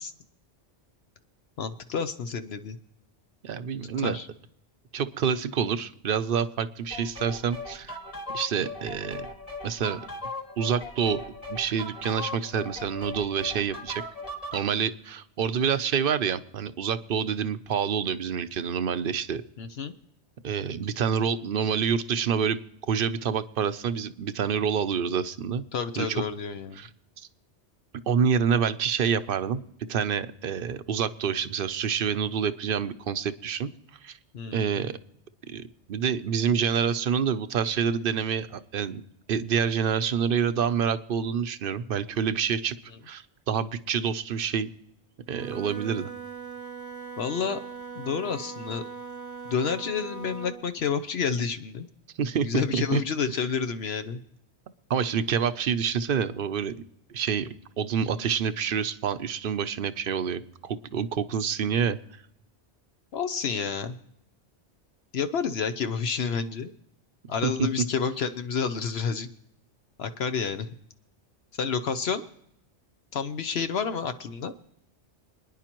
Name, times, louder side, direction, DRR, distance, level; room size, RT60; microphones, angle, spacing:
voice 1, 1.6-2.8 4.0-4.3 19.6-19.9 25.7-26.8 34.3-34.7 47.2-47.6 48.0-48.8 49.5-51.9 52.4-54.2 63.1-64.0 65.1-66.7 67.3-69.3 70.0-70.7 71.6-72.2 73.1-74.5, left 6 dB, 65° left, 10 dB, 0.9 m, -29 dB
voice 2, 3.4-4.2 4.9-8.0 8.3-9.3 9.6-10.0 10.6-11.2 11.5-14.0 14.5-19.4 20.4-22.6 22.9-25.6 26.0-26.2 26.8-26.9 27.2-27.3 28.1-29.6 29.9-33.7 34.0-34.2 34.5-35.0 35.5-35.6 35.9-39.0 39.3-42.7 43.1-44.7 45.3-46.1 52.2-53.0 54.9-56.7 57.1-57.5 57.8-62.0 67.4-67.7, right 7 dB, 60° right, 12 dB, 0.8 m, -27 dB
sound 1, 6.9-14.7, left 2 dB, 30° left, 1.9 m, -38 dB
Wind instrument woodwind instrument, 45.2-50.7, right 5 dB, 15° left, 1.2 m, -40 dB
27.0 x 10.0 x 3.0 m, 0.75 s
omnidirectional pair, 1.2 m